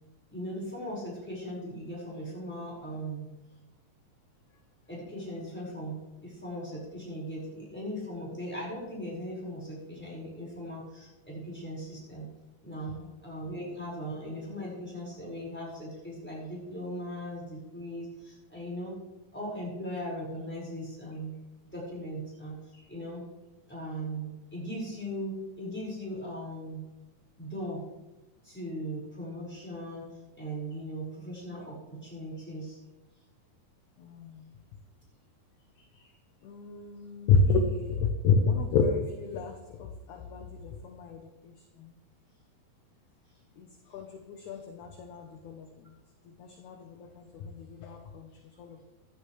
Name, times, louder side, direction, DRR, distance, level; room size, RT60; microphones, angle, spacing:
voice 1, 0.3-3.3 4.9-12.3 12.6-13.0 13.2-19.0 19.3-21.3 21.7-22.6 22.9-23.2 23.7-26.8 27.4-27.8 28.4-30.1 30.3-32.8, equal, 5° left, -5 dB, 4.8 m, -38 dB
voice 2, 34.0-34.4 36.4-41.2 43.6-43.7 43.9-45.7 46.4-48.3 48.6-48.8, left 4 dB, 70° left, 4 dB, 2.1 m, -29 dB
16.0 x 11.5 x 3.3 m, 1.1 s
omnidirectional pair, 4.2 m